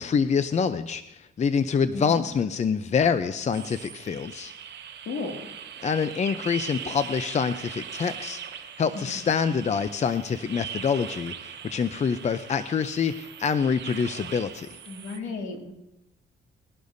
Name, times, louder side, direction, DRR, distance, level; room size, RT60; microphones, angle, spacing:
voice 1, 0.0-4.5 5.8-8.4 8.8-14.7, left 6 dB, 35° left, 11 dB, 0.6 m, -26 dB
voice 2, 1.9-2.2 5.1-5.5 8.9-9.2 14.9-15.7, left 3 dB, 75° left, 2 dB, 2.5 m, -34 dB
sound 1, 3.5-15.2, right 8 dB, 65° right, 1.1 m, -40 dB
20.5 x 11.5 x 2.7 m, 0.88 s
cardioid pair, 90°, 20 cm